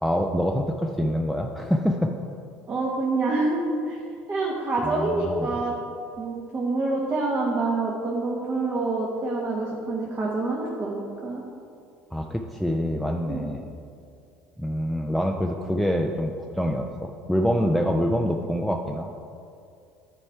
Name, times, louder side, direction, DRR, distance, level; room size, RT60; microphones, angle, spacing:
voice 1, 0.0-2.1 4.8-5.5 12.1-13.7 14.6-19.1, equal, ahead, 2 dB, 0.5 m, -26 dB
voice 2, 2.7-4.0 4.3-5.7 6.2-11.4 13.3-13.4, right 3 dB, 40° right, -3 dB, 1.3 m, -26 dB
9.7 x 4.2 x 4.6 m, 2.4 s
hypercardioid pair, 70°, 5 cm